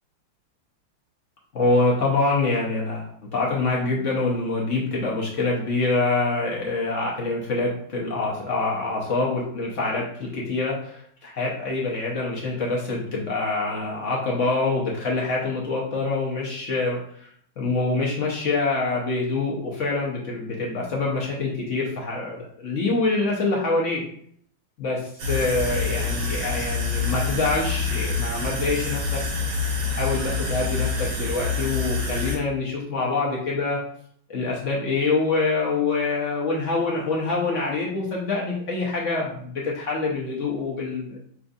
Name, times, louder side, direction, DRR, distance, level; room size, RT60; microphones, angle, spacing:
voice 1, 1.5-24.1 24.8-29.2 30.0-33.8 34.3-41.2, left 3 dB, 65° left, -3 dB, 0.7 m, -25 dB
sound 1, 25.2-32.4, left 4 dB, 85° right, 1.8 m, -27 dB
5.8 x 2.4 x 2.6 m, 0.64 s
omnidirectional pair, 2.2 m